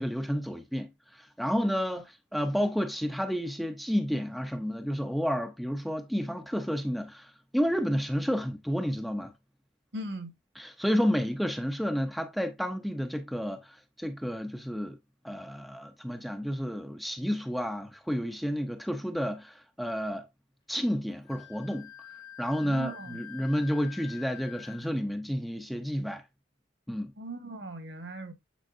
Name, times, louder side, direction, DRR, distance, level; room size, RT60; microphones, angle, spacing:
voice 1, 0.0-9.3 10.6-15.0 15.2-20.2 20.7-21.9 22.4-26.2 26.9-27.1, equal, ahead, 0.6 m, -31 dB
voice 2, 9.9-10.3 22.6-23.2 27.2-28.3, right 1 dB, 55° right, 1.4 m, -39 dB
Wind instrument woodwind instrument, 21.3-25.0, left 11 dB, 25° left, 1.0 m, -47 dB
9.1 x 4.5 x 2.6 m
head